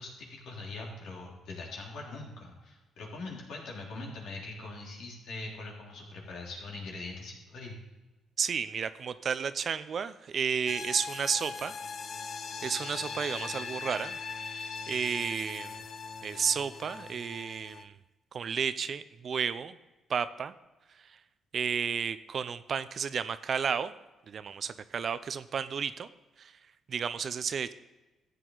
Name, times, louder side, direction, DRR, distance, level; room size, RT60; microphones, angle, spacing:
voice 1, 0.0-7.8, left 3 dB, 80° left, -2 dB, 3.3 m, -42 dB
voice 2, 8.4-11.7 12.6-14.2 14.5-15.8 16.2-17.9 18.3-19.8 20.1-20.5 21.0-21.2 21.5-23.9 24.3-26.1 26.4-26.5 26.9-27.7, right 6 dB, 50° right, 14 dB, 0.6 m, -32 dB
sound 1, 10.7-17.8, left 5 dB, 55° left, 0.9 m, -40 dB
14.0 x 8.3 x 3.9 m, 1.1 s
cardioid pair, 90°, 0 cm